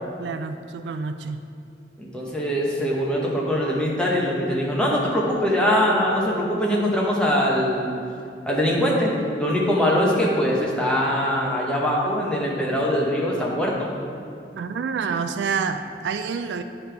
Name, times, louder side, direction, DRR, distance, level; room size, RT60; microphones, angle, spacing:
voice 1, 0.2-1.4 14.5-16.6, right 5 dB, 80° right, 9 dB, 0.3 m, -28 dB
voice 2, 2.0-7.9 8.5-13.9, equal, 5° left, -5 dB, 0.9 m, -22 dB
9.5 x 3.3 x 4.6 m, 2.5 s
head